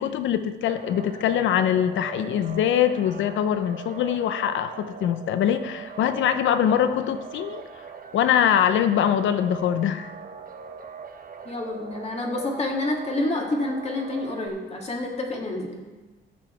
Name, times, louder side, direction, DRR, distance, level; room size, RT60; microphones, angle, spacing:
voice 1, 0.0-7.6 8.1-10.1, left 9 dB, 75° left, 11 dB, 0.7 m, -23 dB
sound 1, 0.7-14.5, right 6 dB, 45° right, 0.8 m, -41 dB
voice 2, 11.4-15.8, left 2 dB, 35° left, 0 dB, 2.3 m, -28 dB
14.0 x 6.3 x 4.5 m, 1.2 s
cardioid pair, 90°, 20 cm